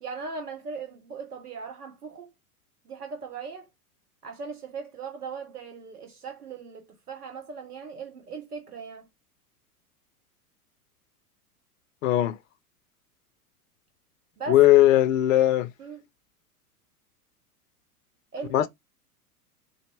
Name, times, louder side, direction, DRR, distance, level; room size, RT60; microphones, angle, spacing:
voice 1, 0.0-2.3 2.8-3.7 4.2-9.1 14.4-14.6 15.8-16.0 18.3-18.7, right 5 dB, 80° right, 0.9 m, -38 dB
voice 2, 12.0-12.4 14.5-15.7 18.5-18.7, left 14 dB, 60° left, 0.5 m, -19 dB
3.9 x 2.0 x 3.2 m
figure-of-eight pair, 95°, 46 cm